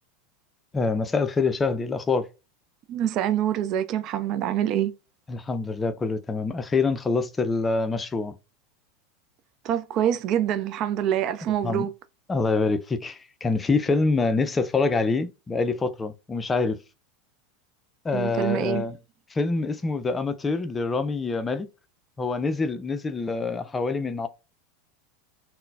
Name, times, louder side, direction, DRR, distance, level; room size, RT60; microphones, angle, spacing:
voice 1, 0.7-2.3 5.3-8.4 11.6-11.9 12.3-16.8 18.0-18.9 19.3-21.7 22.2-24.3, left 4 dB, 20° left, 0.4 m, -25 dB
voice 2, 2.9-4.9 9.6-11.9 18.1-18.9, right 11 dB, 45° right, 0.3 m, -25 dB
3.8 x 2.0 x 2.2 m
hypercardioid pair, 85°, 0 cm